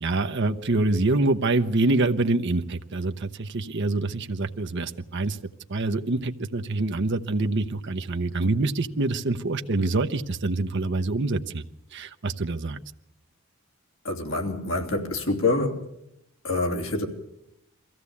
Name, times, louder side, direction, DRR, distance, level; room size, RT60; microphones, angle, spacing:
voice 1, 0.0-5.4 5.7-11.6 11.9-12.8, right 2 dB, 60° right, 0.8 m, -25 dB
voice 2, 14.0-15.9 16.4-17.1, left 2 dB, 75° left, 3.0 m, -26 dB
23.0 x 15.5 x 8.5 m
head